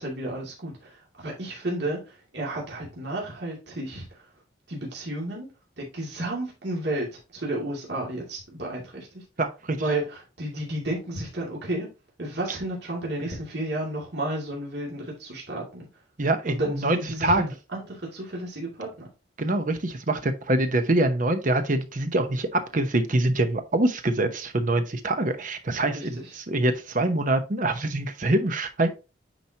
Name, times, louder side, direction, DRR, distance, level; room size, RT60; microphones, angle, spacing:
voice 1, 0.0-4.0 4.7-5.5 5.8-9.2 9.8-11.9 12.2-15.9 16.5-17.4 17.7-19.1 25.9-26.3, right 1 dB, 60° right, 2.4 m, -32 dB
voice 2, 9.4-9.8 12.5-12.6 16.2-17.5 19.4-28.9, right 2 dB, 45° right, 0.8 m, -25 dB
9.1 x 4.5 x 2.8 m
head